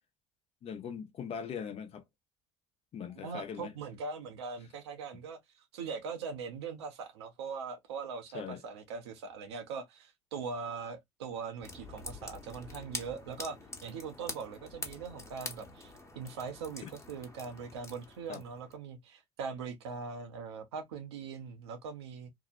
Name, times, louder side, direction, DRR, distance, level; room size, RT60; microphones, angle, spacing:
voice 1, 0.6-2.0 2.9-3.7 8.3-8.6 16.8-16.9 18.3-18.4, left 7 dB, 45° left, 0.7 m, -40 dB
voice 2, 3.1-5.4 5.7-22.3, right 5 dB, 85° right, 0.6 m, -41 dB
sound 1, 11.6-18.8, left 3 dB, 20° left, 0.9 m, -46 dB
2.7 x 2.0 x 2.3 m
hypercardioid pair, 65°, 14 cm